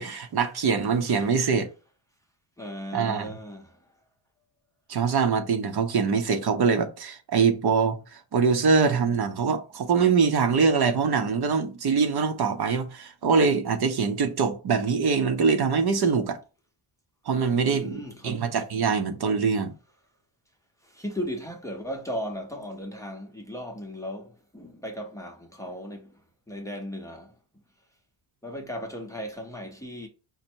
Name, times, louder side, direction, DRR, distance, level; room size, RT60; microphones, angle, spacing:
voice 1, 0.0-1.7 2.9-3.3 4.9-16.4 17.3-19.7, right 5 dB, 50° right, 0.8 m, -23 dB
voice 2, 2.6-3.8 17.6-18.5 20.8-26.1 26.5-27.3 28.4-30.1, equal, 5° left, 0.7 m, -36 dB
5.2 x 2.1 x 4.4 m
cardioid pair, 135°, 50 cm